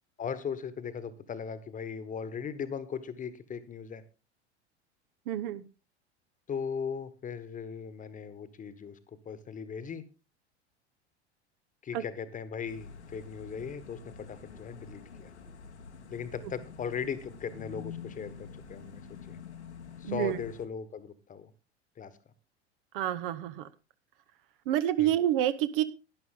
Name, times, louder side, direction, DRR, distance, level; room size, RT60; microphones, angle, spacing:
voice 1, 0.2-4.0 6.5-9.0 9.2-10.0 11.8-15.3 16.1-19.0 19.3-19.4 20.0-21.5 22.0-22.1 25.0-25.2, left 6 dB, 25° left, 14 dB, 1.3 m, -38 dB
voice 2, 5.3-5.6 11.9-12.0 20.0-20.4 22.9-23.6 24.7-25.8, right 12 dB, 50° right, 11 dB, 1.0 m, -28 dB
sound 1, 12.6-20.7, left 6 dB, 75° left, 1.5 m, -47 dB
11.5 x 10.5 x 3.8 m, 0.30 s
figure-of-eight pair, 80°, 34 cm